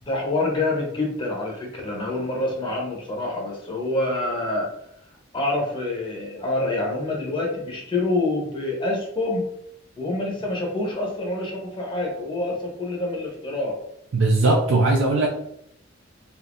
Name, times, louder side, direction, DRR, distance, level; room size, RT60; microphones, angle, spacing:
voice 1, 0.0-4.7 5.3-9.5 10.0-13.8, left 2 dB, 25° left, -1 dB, 0.7 m, -26 dB
voice 2, 14.1-15.3, right 2 dB, 70° right, 0 dB, 0.5 m, -19 dB
3.4 x 2.6 x 2.5 m, 0.73 s
head